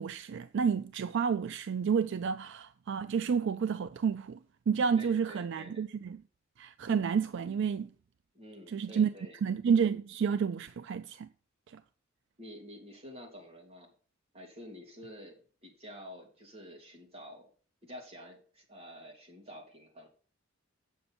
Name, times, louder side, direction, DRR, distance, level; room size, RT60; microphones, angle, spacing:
voice 1, 0.0-4.4 4.7-6.2 6.6-7.9 8.7-9.1 9.4-11.3, right 6 dB, 65° right, 0.4 m, -30 dB
voice 2, 4.9-5.8 8.3-9.4 12.4-13.9 14.3-15.4 15.6-17.5 17.8-20.1, equal, 30° right, 2.6 m, -49 dB
7.8 x 6.6 x 4.3 m
head